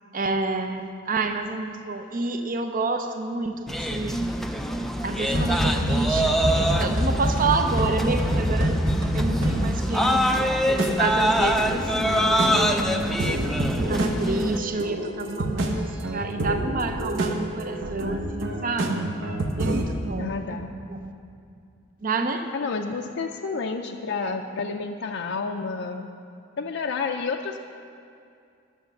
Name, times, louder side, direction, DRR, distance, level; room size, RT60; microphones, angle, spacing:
voice 1, 0.1-4.3 5.0-8.8 9.1-10.6 11.0-13.0 13.8-19.0 19.6-20.6 20.9-21.1 22.0-22.5, right 3 dB, 40° right, 7 dB, 0.6 m, -29 dB
sound 1, 3.7-14.6, equal, ahead, 0.4 m, -25 dB
sound 2, 5.3-9.9, equal, 85° right, 1.9 m, -25 dB
sound 3, 10.7-19.8, right 1 dB, 65° right, 1.0 m, -29 dB
voice 2, 20.2-20.7 22.5-26.1 26.6-27.6, left 4 dB, 60° left, 3 dB, 0.5 m, -30 dB
10.5 x 7.2 x 6.5 m, 2.4 s
head